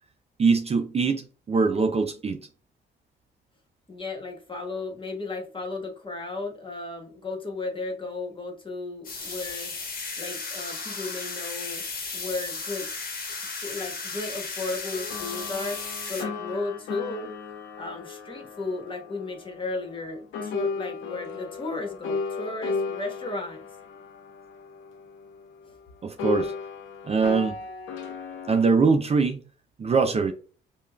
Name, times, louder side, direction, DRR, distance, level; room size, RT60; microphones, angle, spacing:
voice 1, 0.4-2.4 26.0-26.5 27.0-27.5 28.5-29.4 29.8-30.3, right 4 dB, 30° right, 6 dB, 0.5 m, -22 dB
voice 2, 3.9-9.7 10.2-11.8 12.1-12.9 13.5-17.3 17.8-23.6, left 3 dB, 25° left, 2 dB, 1.3 m, -34 dB
sound 1, 9.0-16.2, left 4 dB, 45° left, 1.1 m, -35 dB
sound 2, 14.9-20.1 20.3-25.8 26.2-28.7, left 4 dB, 80° left, 0.8 m, -35 dB
5.2 x 2.4 x 2.2 m, 0.38 s
cardioid pair, 90°, 20 cm